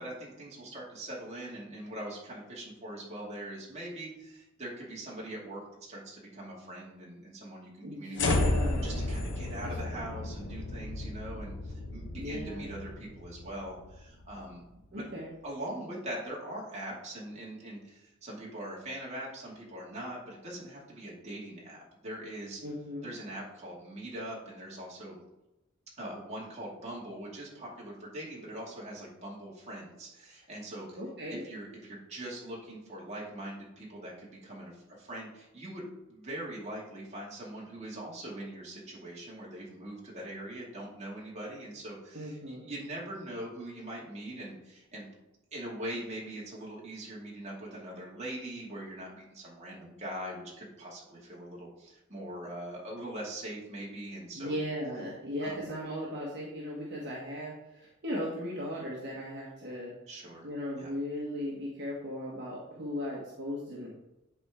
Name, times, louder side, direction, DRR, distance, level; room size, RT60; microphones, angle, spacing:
voice 1, 0.0-8.5 8.8-14.6 14.9-15.1 15.4-22.6 23.0-25.2 26.0-31.0 31.3-45.1 45.5-54.5 55.4-55.6 60.1-60.5 60.8-60.9, right 1 dB, 30° right, -4 dB, 2.4 m, -42 dB
voice 2, 7.8-8.9 9.6-10.0 12.2-12.7 14.9-15.3 22.6-23.1 31.0-31.4 42.1-42.7 54.3-59.9 60.4-63.9, equal, 55° right, -5 dB, 1.5 m, -37 dB
sound 1, 8.2-14.5, left 2 dB, 60° left, 1.2 m, -33 dB
10.5 x 4.3 x 3.7 m, 0.93 s
head